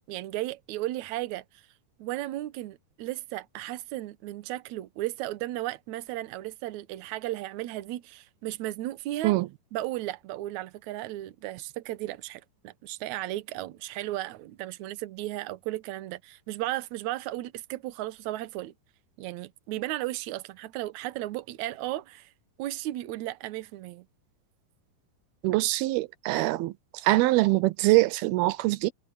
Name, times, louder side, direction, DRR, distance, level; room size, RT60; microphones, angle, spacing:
voice 1, 0.1-1.4 2.0-9.4 9.7-18.7 19.2-22.3 22.6-24.1, right 16 dB, 70° right, 1.9 m, -35 dB
voice 2, 25.4-26.7 27.0-28.9, right 19 dB, 85° right, 2.7 m, -23 dB
omnidirectional pair, 4.3 m